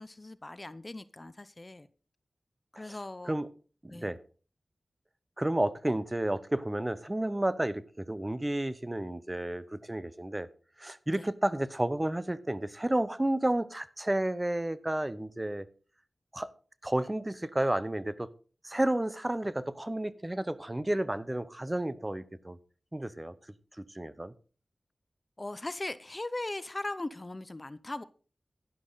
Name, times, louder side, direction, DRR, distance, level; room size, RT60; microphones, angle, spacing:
voice 1, 0.0-1.9 2.7-3.4 3.9-4.1 11.1-11.3 25.4-28.0, left 2 dB, 35° left, 0.7 m, -39 dB
voice 2, 5.4-10.5 10.8-15.7 16.3-16.5 16.8-18.3 18.6-22.6 22.9-23.3 23.8-24.3, right 1 dB, 20° right, 0.8 m, -31 dB
11.5 x 11.0 x 4.0 m
wide cardioid pair, 60°, 0 cm